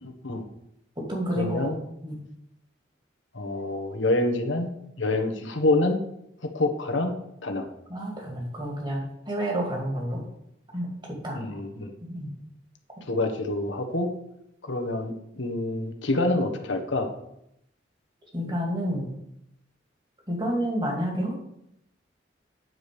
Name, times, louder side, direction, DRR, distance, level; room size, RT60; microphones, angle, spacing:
voice 1, 0.0-0.4 1.3-1.8 3.3-4.7 5.0-6.0 6.4-7.1 7.4-7.7 11.3-11.9 13.1-14.1 14.6-17.1, left 2 dB, 75° left, 5 dB, 1.3 m, -27 dB
voice 2, 1.0-1.7 2.0-2.2 7.9-10.2 10.7-10.9 11.2-11.6 12.0-12.3 18.3-19.1 20.3-21.4, equal, 25° right, -1 dB, 2.5 m, -29 dB
9.3 x 4.9 x 6.8 m, 0.79 s
head